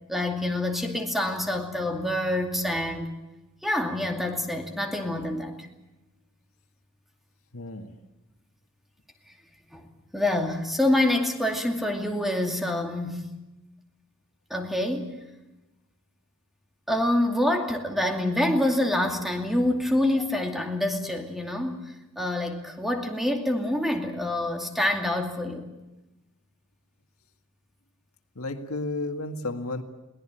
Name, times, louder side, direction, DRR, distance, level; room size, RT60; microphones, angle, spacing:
voice 1, 0.1-3.1 3.6-5.7 9.7-9.8 10.1-13.3 14.5-15.2 16.9-25.7, left 1 dB, ahead, 3 dB, 2.4 m, -26 dB
voice 2, 7.5-7.9 28.4-29.8, left 2 dB, 80° left, 6 dB, 1.8 m, -32 dB
22.5 x 17.5 x 9.1 m, 1.0 s
head